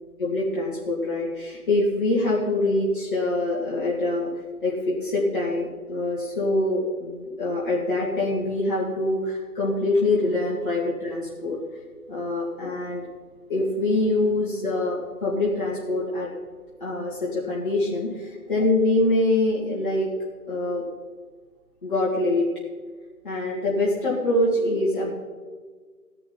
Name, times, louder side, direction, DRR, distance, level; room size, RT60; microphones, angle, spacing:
voice 1, 0.2-4.3 4.6-11.6 12.1-13.1 13.5-16.3 16.8-18.1 18.5-20.1 20.5-20.8 21.8-22.5 23.2-25.1, left 2 dB, 30° left, -7 dB, 2.4 m, -24 dB
16.0 x 10.5 x 4.4 m, 1.5 s
figure-of-eight pair, 155°, 48 cm